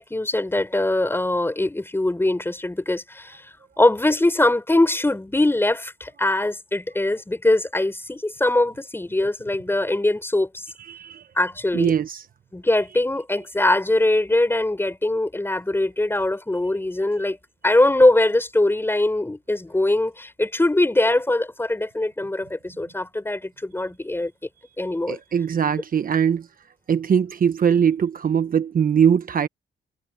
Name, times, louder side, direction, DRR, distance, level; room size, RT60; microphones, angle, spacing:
voice 1, 0.0-3.4 3.8-10.7 11.4-11.9 12.5-17.4 17.6-24.3 24.8-25.2, left 2 dB, 10° left, 4.3 m, -22 dB
voice 2, 10.8-11.2 11.7-12.2 25.1-26.5 26.9-29.5, right 7 dB, 45° right, 1.1 m, -21 dB
cardioid pair, 90°, 20 cm